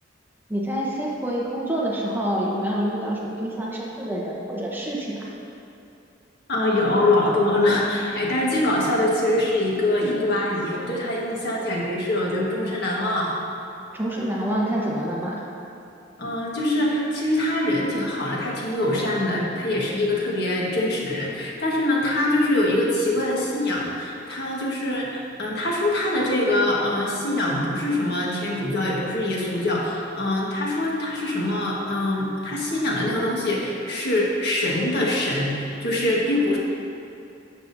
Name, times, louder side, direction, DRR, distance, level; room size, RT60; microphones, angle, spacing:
voice 1, 0.5-5.2 13.9-15.4, right 1 dB, 10° right, -4 dB, 1.0 m, -27 dB
voice 2, 6.5-13.4 16.2-36.6, left 1 dB, 60° left, -4 dB, 1.5 m, -24 dB
12.0 x 7.4 x 2.7 m, 2.7 s
head